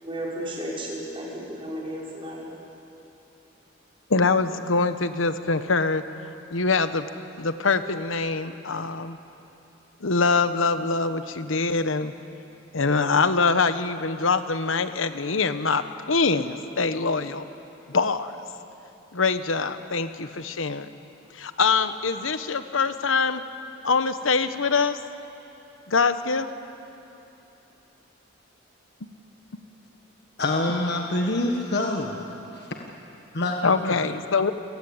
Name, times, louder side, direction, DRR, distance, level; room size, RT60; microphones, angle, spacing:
voice 1, 0.0-2.5, equal, 25° right, -4 dB, 5.6 m, -33 dB
voice 2, 4.1-6.0 6.5-7.1 7.4-9.2 10.0-12.1 12.7-17.4 17.9-18.4 19.1-20.9 21.3-23.4 23.8-25.0 25.9-26.5 33.6-34.5, left 4 dB, 90° left, 10 dB, 1.1 m, -24 dB
voice 3, 30.4-32.2 32.5-32.7 33.3-34.0, left 2 dB, 55° left, 2 dB, 1.6 m, -26 dB
28.0 x 18.0 x 8.8 m, 2.9 s
head